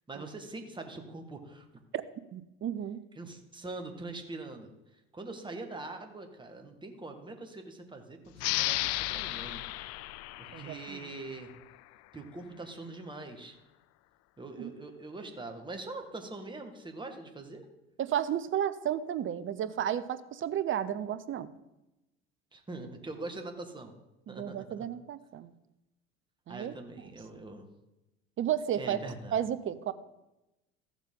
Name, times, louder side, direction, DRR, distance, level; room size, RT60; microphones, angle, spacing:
voice 1, 0.1-1.7 3.2-4.7 5.1-9.6 10.4-11.5 12.1-13.6 14.4-17.7 22.5-23.9 24.3-24.9 26.5-27.7 28.8-29.4, right 2 dB, 15° right, 5 dB, 1.7 m, -43 dB
voice 2, 2.3-3.0 10.5-11.0 14.6-14.7 18.0-21.5 24.3-25.5 26.5-26.7 27.1-27.2 28.4-29.0 29.3-29.9, right 10 dB, 35° right, 14 dB, 0.8 m, -33 dB
sound 1, 8.4-11.6, left 17 dB, 50° left, 0.4 m, -34 dB
14.5 x 7.3 x 3.8 m, 0.95 s
hypercardioid pair, 75°, 34 cm